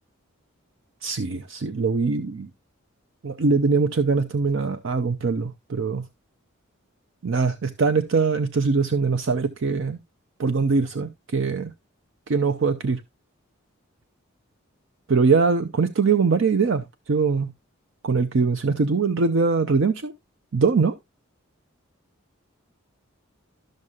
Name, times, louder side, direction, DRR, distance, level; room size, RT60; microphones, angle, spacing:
voice 1, 1.0-2.5 3.2-6.1 7.2-10.0 10.4-11.7 12.3-13.0 15.1-17.5 18.0-20.1 20.5-20.9, right 4 dB, 60° right, 0.5 m, -22 dB
12.5 x 6.4 x 2.4 m
head